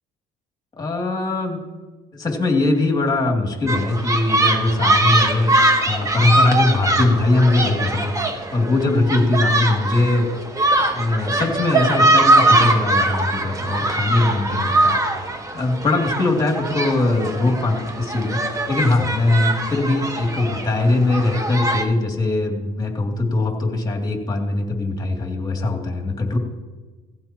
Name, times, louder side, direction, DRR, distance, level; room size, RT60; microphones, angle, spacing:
voice 1, 0.7-1.6 2.1-8.2 8.5-10.3 10.9-26.4, left 2 dB, 25° left, 2 dB, 2.8 m, -21 dB
sound 1, 3.7-21.8, right 2 dB, 20° right, 1.5 m, -21 dB
18.0 x 15.0 x 3.0 m, 1.3 s
cardioid pair, 110°, 17 cm